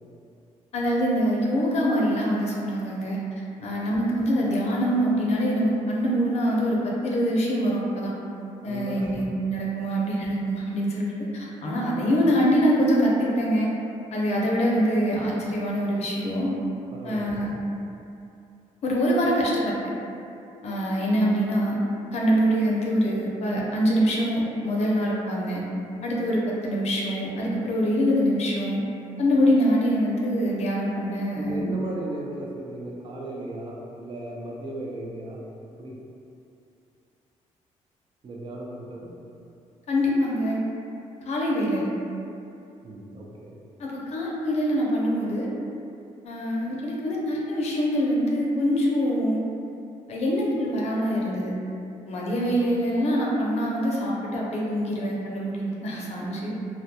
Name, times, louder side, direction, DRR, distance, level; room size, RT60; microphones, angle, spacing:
voice 1, 0.7-3.2 3.6-8.1 8.6-13.7 14.1-16.5 17.0-17.5 18.8-19.7 20.6-21.8 22.1-25.6 26.0-28.8 29.2-31.7 39.9-40.6 41.2-41.9 43.8-45.5 46.2-49.4 50.1-51.5 52.0-56.5, equal, 55° left, -4 dB, 0.5 m, -24 dB
voice 2, 8.7-9.1 9.8-9.9 16.9-17.5 31.3-35.4 35.8-35.9 38.2-39.1 42.8-43.5, right 1 dB, 40° right, -2 dB, 0.4 m, -36 dB
2.2 x 2.2 x 2.7 m, 2.7 s
cardioid pair, 85°, 13 cm